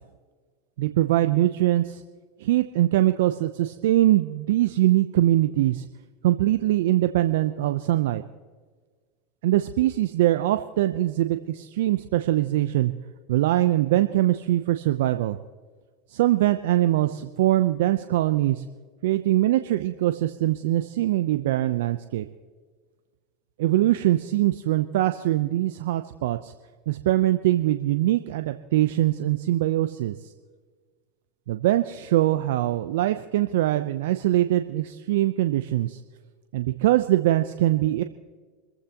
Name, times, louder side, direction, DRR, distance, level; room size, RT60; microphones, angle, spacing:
voice 1, 0.8-2.0 2.4-5.8 6.2-8.2 9.4-12.9 13.3-15.4 16.1-18.6 19.0-22.3 23.6-26.5 26.9-30.1 31.5-36.0 36.5-38.0, right 14 dB, 70° right, 9 dB, 0.6 m, -22 dB
26.0 x 15.0 x 2.9 m, 1.5 s
hypercardioid pair, 95°, 0 cm